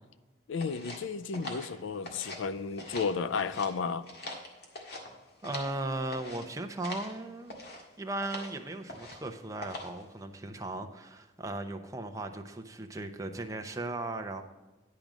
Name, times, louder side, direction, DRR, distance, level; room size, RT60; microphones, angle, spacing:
voice 1, 0.5-4.1, left 5 dB, 90° left, 15 dB, 0.4 m, -33 dB
sound 1, 0.6-2.5 2.7-3.7 4.0-5.8 6.1-6.5 6.8-7.1 7.5-7.8 8.2-8.5 8.9-9.3 9.6-10.0, left 2 dB, 60° left, 1.8 m, -43 dB
voice 2, 5.4-7.5 8.0-14.4, right 2 dB, 15° right, 4 dB, 0.7 m, -37 dB
10.5 x 5.2 x 6.0 m, 1.1 s
head